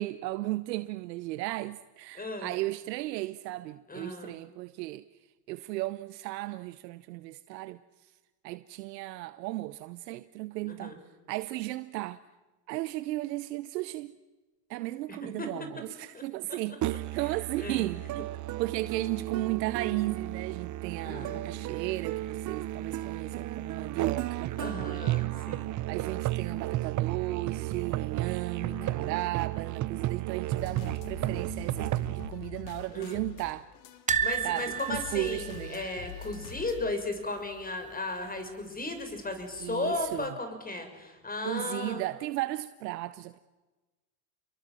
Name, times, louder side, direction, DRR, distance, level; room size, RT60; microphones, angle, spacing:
voice 1, 0.0-5.0 5.5-7.8 8.4-10.9 11.3-12.2 12.7-14.1 14.7-18.3 18.6-24.5 25.9-33.7 34.4-35.8 39.6-40.2 41.4-43.4, right 18 dB, 75° right, 1.0 m, -35 dB
voice 2, 2.1-2.5 3.9-4.4 10.7-11.0 15.1-15.5 16.1-16.2 17.6-17.9 21.0-21.5 24.6-25.7 28.6-29.1 32.9-33.2 34.2-42.1, left 2 dB, 15° left, 6.4 m, -36 dB
Musical instrument, 16.8-32.3, right 15 dB, 35° right, 0.8 m, -33 dB
sound 1, 30.6-36.9, left 10 dB, 75° left, 2.7 m, -44 dB
sound 2, 34.1-37.1 37.4-37.6 37.8-37.9 39.2-39.7 40.2-40.3, right 7 dB, 15° right, 1.1 m, -33 dB
28.5 x 23.0 x 7.7 m
hypercardioid pair, 90°, 49 cm